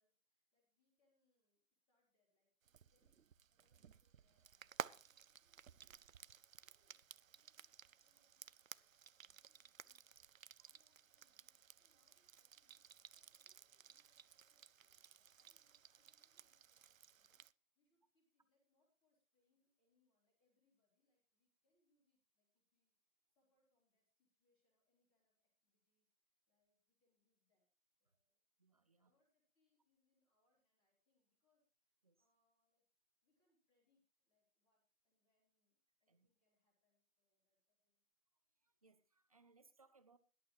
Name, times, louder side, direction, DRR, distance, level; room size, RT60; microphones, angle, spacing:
voice 1, 0.0-1.6 1.9-3.2 3.5-27.7 28.0-28.4 28.8-32.8 33.2-38.1, left 2 dB, 10° left, 3.7 m, -87 dB
Frying (food), 2.7-17.5, right 8 dB, 70° right, 0.6 m, -56 dB
voice 2, 28.6-29.1 32.0-32.2 36.1-36.3 38.6-40.2, right 4 dB, 25° right, 0.7 m, -71 dB
17.5 x 11.5 x 3.1 m
figure-of-eight pair, 155°, 42 cm